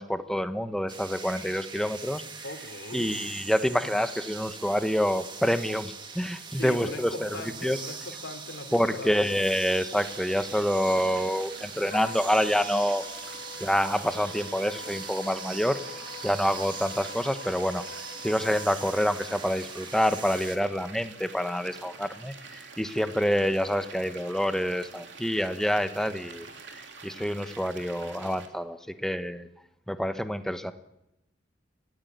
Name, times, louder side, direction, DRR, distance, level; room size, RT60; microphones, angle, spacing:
voice 1, 0.0-2.3 2.9-7.3 7.6-7.8 8.7-13.0 13.6-15.8 16.2-29.5 29.9-30.7, equal, 5° left, 9 dB, 1.1 m, -27 dB
sound 1, 0.9-20.6, right 5 dB, 25° right, 1.7 m, -42 dB
voice 2, 2.4-3.2 6.5-9.4, left 2 dB, 75° left, 8 dB, 2.9 m, -40 dB
sound 2, 10.0-28.5, right 4 dB, 70° right, 3.2 m, -47 dB
sound 3, 11.8-19.0, left 4 dB, 45° left, 1.9 m, -45 dB
23.5 x 17.0 x 9.4 m, 0.87 s
head